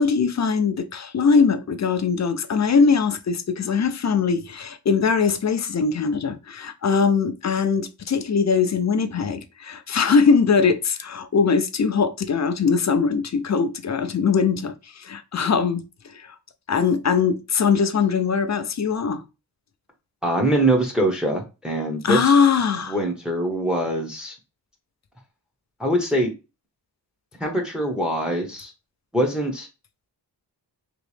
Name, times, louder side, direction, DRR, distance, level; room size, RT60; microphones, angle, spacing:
voice 1, 0.0-16.4 16.7-19.2 22.0-23.0, left 5 dB, 40° left, 0.4 m, -21 dB
voice 2, 20.2-22.3 22.9-24.4 25.8-26.3 27.4-28.7 29.1-29.7, right 1 dB, ahead, 0.7 m, -23 dB
3.0 x 3.0 x 3.2 m
wide cardioid pair, 125°, 43 cm